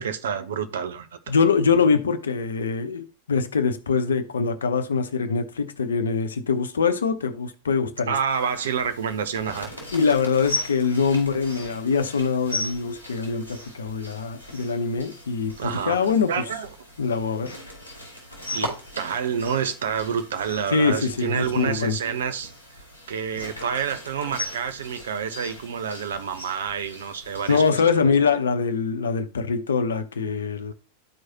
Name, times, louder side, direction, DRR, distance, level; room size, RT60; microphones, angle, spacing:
voice 1, 0.0-1.3 8.1-9.7 15.6-16.7 18.5-22.5 23.1-28.3, right 7 dB, 60° right, 0.8 m, -28 dB
voice 2, 1.3-8.1 9.9-16.4 17.0-17.6 20.7-22.0 27.5-30.7, left 5 dB, 70° left, 0.7 m, -23 dB
sound 1, 8.3-27.7, left 1 dB, 85° right, 3.2 m, -38 dB
12.5 x 4.7 x 2.8 m
figure-of-eight pair, 90°, 0 cm